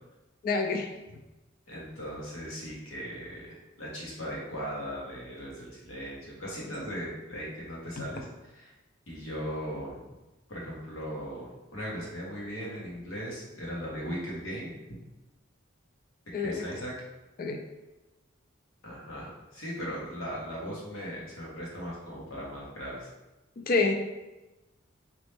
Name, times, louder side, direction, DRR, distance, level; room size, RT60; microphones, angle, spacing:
voice 1, 0.4-0.9 8.0-8.1 16.3-16.6 17.4-17.6 23.6-23.9, left 4 dB, 45° left, 4 dB, 0.4 m, -27 dB
voice 2, 1.7-8.7 9.1-10.0 10.5-15.0 16.4-16.9 18.8-23.1, equal, 85° left, -5 dB, 1.4 m, -38 dB
4.2 x 2.9 x 3.4 m, 1.0 s
head